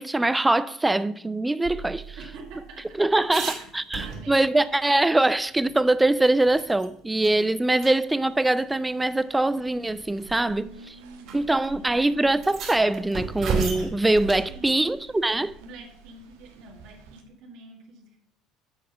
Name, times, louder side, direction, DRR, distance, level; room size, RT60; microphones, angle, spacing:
voice 1, 0.0-2.2 3.0-10.7 11.3-15.5, right 2 dB, 10° right, 0.4 m, -23 dB
sound 1, 1.6-4.6 5.0-5.1 5.5-6.9 7.2-7.4 7.8-7.9 9.0-9.1 10.0-10.3 11.3-11.4 11.6-11.7 12.3-14.5 16.8-17.2, right 5 dB, 60° right, 2.7 m, -34 dB
voice 2, 2.2-3.7 4.0-4.5 10.5-12.1 14.5-14.9 15.6-18.2, right 3 dB, 75° right, 1.7 m, -47 dB
sound 2, 8.3-17.2, right 4 dB, 90° right, 1.1 m, -48 dB
7.6 x 4.1 x 6.7 m
supercardioid pair, 80°, 0 cm